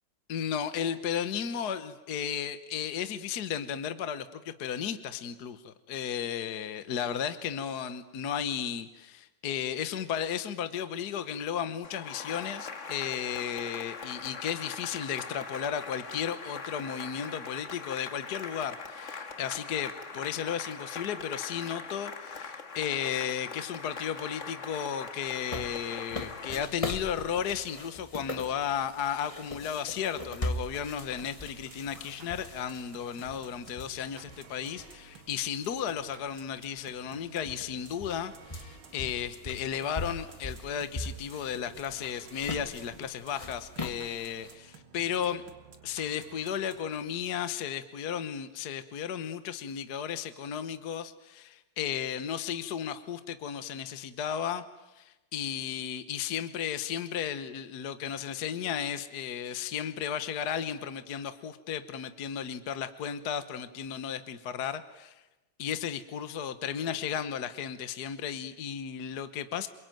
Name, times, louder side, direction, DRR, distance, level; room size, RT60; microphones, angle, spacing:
voice 1, 0.3-5.6 5.9-45.4 45.8-54.6 54.9-65.1 65.6-69.7, left 8 dB, 55° left, 11 dB, 1.5 m, -34 dB
Cheering / Applause, 11.8-26.6, left 4 dB, 40° left, 1.7 m, -41 dB
sound 1, 25.3-35.3 35.8-35.9 36.8-36.9 37.1-44.5, left 2 dB, 20° left, 1.5 m, -41 dB
sound 2, 31.2-47.5, right 5 dB, 65° right, 2.7 m, -54 dB
28.0 x 23.0 x 9.2 m, 1.0 s
omnidirectional pair, 2.4 m